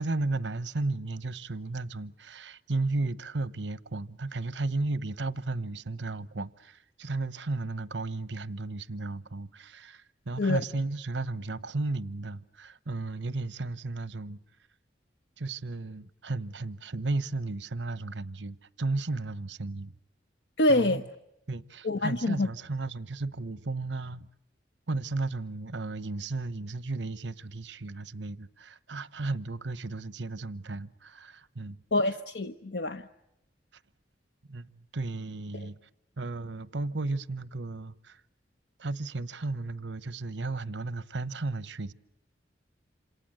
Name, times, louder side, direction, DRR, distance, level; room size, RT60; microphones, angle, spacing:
voice 1, 0.0-14.4 15.4-19.9 20.7-21.0 21.5-24.3 24.9-31.8 33.7-33.8 34.5-35.8 36.2-38.2 38.8-41.9, right 2 dB, 85° right, 1.0 m, -34 dB
voice 2, 20.6-21.0 21.8-22.5 31.9-33.1, left 2 dB, 75° left, 1.0 m, -26 dB
27.5 x 27.5 x 7.8 m
head